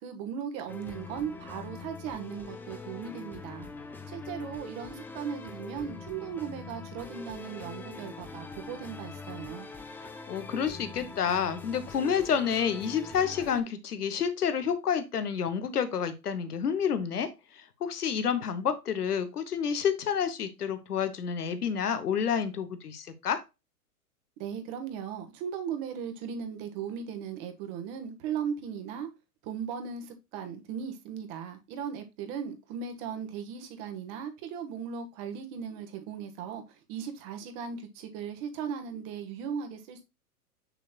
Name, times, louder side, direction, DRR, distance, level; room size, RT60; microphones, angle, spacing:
voice 1, 0.0-3.7 4.1-9.7 24.4-29.1 29.4-40.0, right 7 dB, 40° right, 1.5 m, -37 dB
sound 1, 0.7-13.6, left 4 dB, 5° left, 0.4 m, -43 dB
voice 2, 10.0-23.4, left 7 dB, 80° left, 1.1 m, -29 dB
6.5 x 6.3 x 2.3 m
hypercardioid pair, 110°, 45 cm